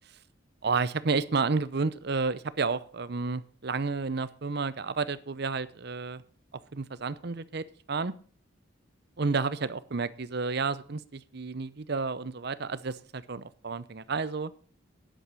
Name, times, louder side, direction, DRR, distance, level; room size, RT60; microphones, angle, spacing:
voice 1, 0.6-6.2 6.7-8.1 9.2-14.5, right 4 dB, 60° right, 16 dB, 0.7 m, -31 dB
10.0 x 8.4 x 6.2 m, 0.43 s
head